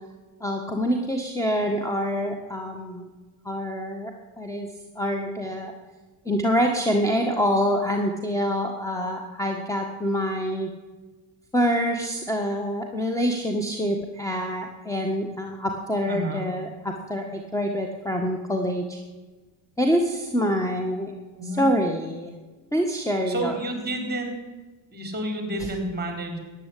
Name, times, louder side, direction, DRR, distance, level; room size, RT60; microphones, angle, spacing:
voice 1, 0.4-3.1 3.4-4.1 4.4-4.7 4.9-5.7 6.2-10.7 11.5-19.0 19.8-21.1 21.6-22.3 22.7-23.5, equal, 5° left, 3 dB, 1.6 m, -26 dB
voice 2, 16.1-16.4 21.4-21.7 23.3-24.3 24.9-26.4, right 1 dB, 20° right, 4 dB, 4.5 m, -30 dB
14.5 x 9.7 x 8.5 m, 1.3 s
supercardioid pair, 95°, 46 cm